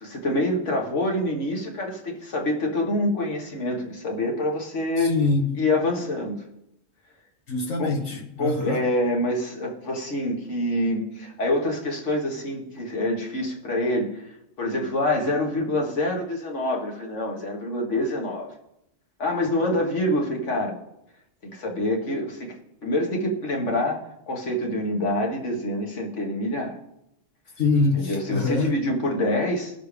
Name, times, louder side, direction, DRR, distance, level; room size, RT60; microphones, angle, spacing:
voice 1, 0.0-5.1 5.5-6.4 7.8-7.9 8.4-14.2 14.6-18.5 19.2-20.8 21.4-26.8 27.9-29.7, left 1 dB, 70° left, 0 dB, 2.1 m, -26 dB
voice 2, 5.0-5.5 7.5-8.8 27.6-28.7, left 3 dB, 85° left, 1 dB, 2.0 m, -24 dB
19.5 x 6.7 x 3.5 m, 0.81 s
omnidirectional pair, 1.3 m